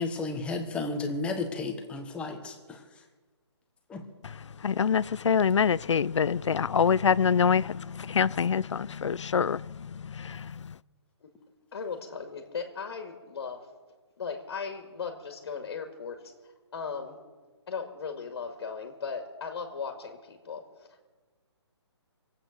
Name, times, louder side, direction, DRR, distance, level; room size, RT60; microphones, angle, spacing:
voice 1, 0.0-2.8 3.9-4.0, left 3 dB, 5° left, 1.1 m, -33 dB
voice 2, 4.6-10.5, left 7 dB, 85° left, 0.5 m, -25 dB
voice 3, 11.7-13.6 14.2-16.2 16.7-17.2 17.7-21.0, left 5 dB, 60° left, 2.1 m, -37 dB
23.5 x 8.7 x 6.6 m
hypercardioid pair, 160°, 15 cm